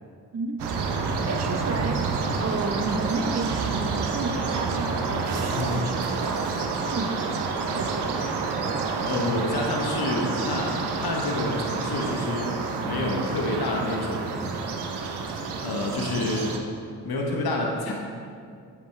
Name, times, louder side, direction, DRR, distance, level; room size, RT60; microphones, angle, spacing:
voice 1, 0.3-0.7 1.3-2.0 2.4-6.6 6.9-8.2, right 3 dB, 40° right, 5 dB, 0.9 m, -32 dB
sound 1, 0.6-16.6, right 4 dB, 75° right, 0.8 m, -29 dB
voice 2, 5.5-5.8 9.1-14.4 15.6-16.6 17.0-17.9, left 2 dB, 65° left, 0 dB, 1.2 m, -28 dB
8.2 x 7.1 x 3.3 m, 2.3 s
supercardioid pair, 40°, 40 cm